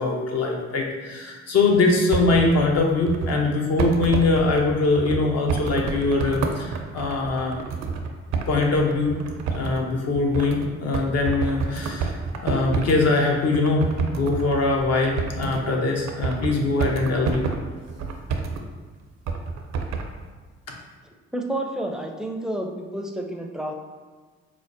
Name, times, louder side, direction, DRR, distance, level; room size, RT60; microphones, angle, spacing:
voice 1, 0.0-7.6 8.5-9.2 9.5-12.1 12.4-17.4, left 3 dB, 60° left, 0 dB, 0.7 m, -22 dB
sound 1, 1.9-3.4 3.8-13.1 13.4-15.7 16.0-18.6 19.3-20.1, right 5 dB, 70° right, 0.5 m, -29 dB
voice 2, 21.3-23.8, right 1 dB, ahead, 2 dB, 0.4 m, -30 dB
4.7 x 2.0 x 2.6 m, 1.4 s
supercardioid pair, 55°, 29 cm